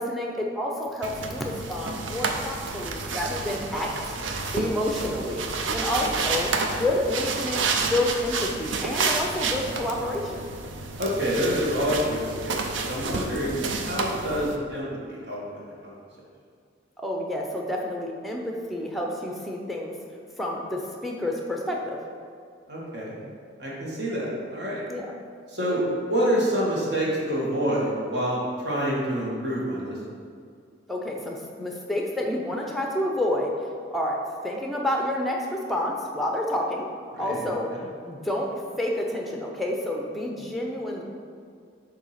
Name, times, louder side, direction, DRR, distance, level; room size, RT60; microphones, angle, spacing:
voice 1, 0.0-4.1 4.5-6.5 6.8-10.4 13.3-13.5 17.0-20.0 20.4-22.0 24.9-25.1 30.9-33.5 33.9-36.9 37.2-37.7 38.0-41.0, left 1 dB, ahead, 0 dB, 0.6 m, -29 dB
sound 1, 1.0-14.6, right 4 dB, 85° right, 0.5 m, -30 dB
voice 2, 11.0-15.9 22.7-23.2 23.6-24.8 25.5-30.0 37.1-37.4 37.7-37.8, equal, 60° right, -5 dB, 1.5 m, -27 dB
7.1 x 2.8 x 5.7 m, 2.2 s
head